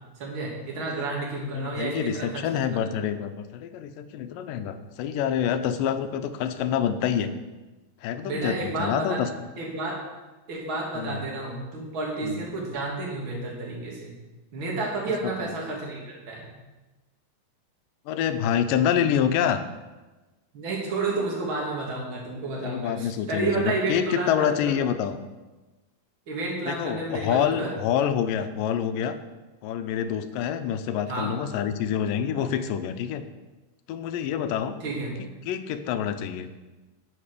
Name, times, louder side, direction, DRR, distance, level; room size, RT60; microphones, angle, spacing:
voice 1, 0.2-2.6 8.2-9.2 9.6-10.0 10.5-14.2 14.5-16.5 20.5-24.7 26.3-27.7 31.1-31.4 32.4-32.5 34.8-35.1, right 2 dB, 40° right, -3 dB, 3.1 m, -31 dB
voice 2, 1.5-7.3 8.0-9.3 11.0-11.2 12.2-12.4 18.1-19.6 22.6-25.2 26.7-29.2 29.6-33.2 33.9-34.8 35.5-36.5, left 9 dB, 90° left, 10 dB, 2.4 m, -27 dB
10.0 x 8.0 x 6.7 m, 1.2 s
omnidirectional pair, 3.8 m